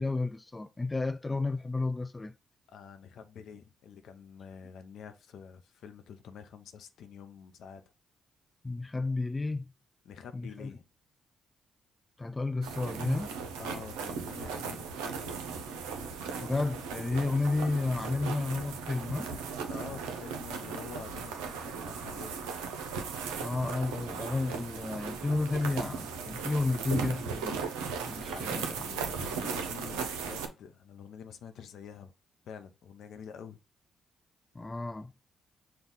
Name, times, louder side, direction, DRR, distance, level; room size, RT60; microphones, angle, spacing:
voice 1, 0.0-2.3 8.6-9.7 10.3-10.7 12.2-13.4 16.4-19.3 23.4-27.6 28.1-28.8 34.6-35.1, left 3 dB, 25° left, 0.3 m, -32 dB
voice 2, 2.7-7.8 10.0-10.8 13.6-15.4 19.7-22.5 28.2-32.1 32.4-33.6, left 7 dB, 70° left, 0.6 m, -47 dB
sound 1, 12.6-30.5, right 5 dB, 85° right, 0.6 m, -37 dB
5.5 x 2.3 x 3.8 m
hypercardioid pair, 45°, 0 cm